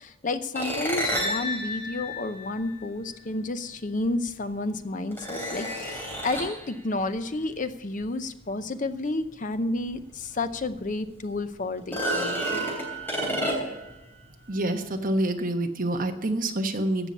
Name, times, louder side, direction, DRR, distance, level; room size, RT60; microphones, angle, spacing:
voice 1, 0.0-12.7, left 2 dB, 35° left, 10 dB, 0.7 m, -31 dB
sound 1, 0.5-3.0 4.2-4.3 5.1-6.7 9.9-10.0 10.5-10.6 11.8-13.9, equal, 10° left, 3.0 m, -30 dB
voice 2, 14.5-17.1, right 1 dB, 40° right, 4 dB, 1.2 m, -27 dB
15.5 x 5.7 x 8.4 m, 0.99 s
head